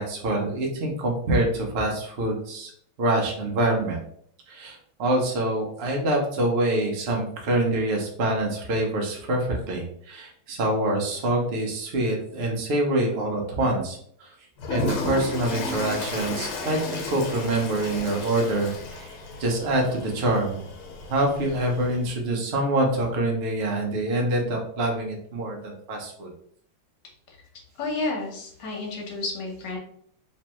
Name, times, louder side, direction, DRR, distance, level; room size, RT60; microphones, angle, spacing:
voice 1, 0.0-2.7 3.0-4.0 4.5-14.3 14.7-20.6 21.1-26.3, right 1 dB, 80° right, 0 dB, 0.5 m, -25 dB
Toilet flush, 14.6-22.1, left 3 dB, 80° left, 1.7 m, -33 dB
voice 2, 27.7-29.8, left 2 dB, 60° left, -1 dB, 1.4 m, -31 dB
3.3 x 3.2 x 3.0 m, 0.63 s
omnidirectional pair, 2.4 m